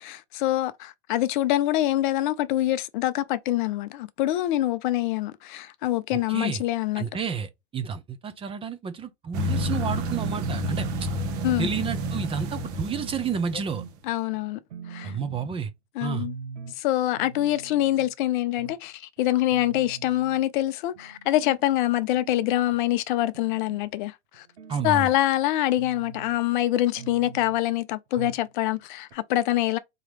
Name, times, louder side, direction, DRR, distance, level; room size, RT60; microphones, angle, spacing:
voice 1, 0.0-7.0 11.4-11.7 14.0-14.6 14.9-15.1 16.0-16.3 16.8-24.5 24.8-29.8, left 14 dB, 45° left, 0.5 m, -25 dB
voice 2, 6.3-6.6 7.0-10.9 11.6-13.8 15.0-15.7 16.0-16.3 24.7-25.1, right 6 dB, 15° right, 0.6 m, -30 dB
sound 1, 9.3-13.9, equal, 40° right, 1.1 m, -30 dB
sound 2, 9.9-10.8 11.3-12.1 12.5-13.2 13.7-14.0 14.3-14.4 14.7-15.7 16.2-16.8 17.1-18.1 18.6-18.8 19.2-19.3 19.5-20.4 20.9-21.6 22.1-22.8 23.3-23.9 24.3-25.4 25.8-26.4 27.0-27.6 28.2-28.5 28.8-28.9 29.1-29.2, right 6 dB, 90° right, 0.8 m, -42 dB
3.9 x 2.9 x 3.3 m
hypercardioid pair, 110°, 34 cm